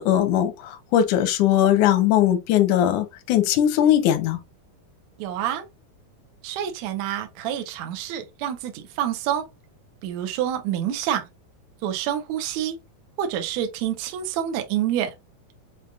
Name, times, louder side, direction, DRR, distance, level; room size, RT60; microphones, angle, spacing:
voice 1, 0.0-4.4, left 11 dB, 75° left, 1.8 m, -20 dB
voice 2, 5.2-5.6 6.4-9.5 10.0-11.3 11.8-12.8 13.2-15.1, right 10 dB, 80° right, 1.6 m, -27 dB
6.9 x 2.5 x 2.4 m
omnidirectional pair, 4.5 m